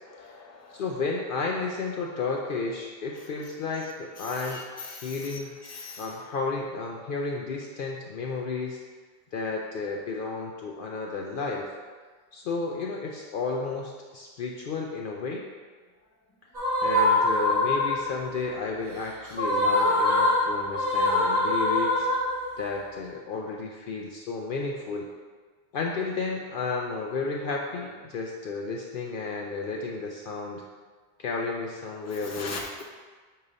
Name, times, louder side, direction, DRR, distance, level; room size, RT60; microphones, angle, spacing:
voice 1, 0.0-0.9 3.1-3.9 4.2-6.2 32.0-32.8, left 3 dB, 20° left, -1 dB, 0.6 m, -42 dB
voice 2, 0.7-5.5 6.0-8.8 9.3-11.6 12.3-15.5 16.8-22.1 22.6-25.0 25.7-30.6 31.2-32.8, left 4 dB, 60° left, 0 dB, 0.6 m, -32 dB
sound 1, 16.5-18.2 19.3-22.7, left 2 dB, 45° right, 1.7 m, -24 dB
8.5 x 2.9 x 3.9 m, 1.5 s
omnidirectional pair, 1.1 m